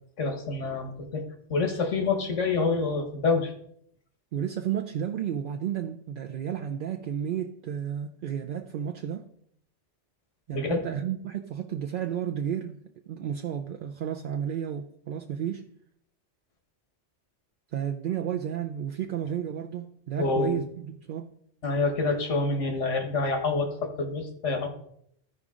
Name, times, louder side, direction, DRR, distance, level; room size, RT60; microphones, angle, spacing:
voice 1, 0.2-1.2 1.5-3.5 10.5-10.8 20.2-20.7 21.6-24.7, left 3 dB, 90° left, 1.6 m, -27 dB
voice 2, 4.3-9.3 10.5-12.8 13.1-15.7 17.7-21.3, right 9 dB, 60° right, 0.6 m, -32 dB
14.5 x 5.0 x 3.7 m
omnidirectional pair, 1.2 m